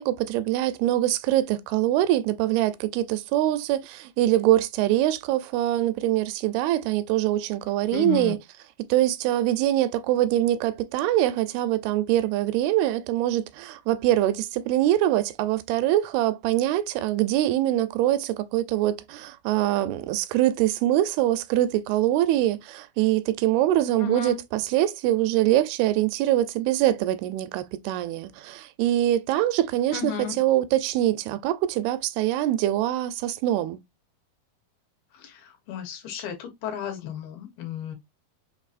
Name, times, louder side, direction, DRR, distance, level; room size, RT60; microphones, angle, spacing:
voice 1, 0.0-8.4 8.9-33.8, right 13 dB, 85° right, 2.5 m, -24 dB
voice 2, 7.9-8.3 24.0-24.4 29.9-30.4 35.1-38.0, left 9 dB, 75° left, 2.8 m, -33 dB
6.1 x 2.6 x 2.4 m
omnidirectional pair, 4.4 m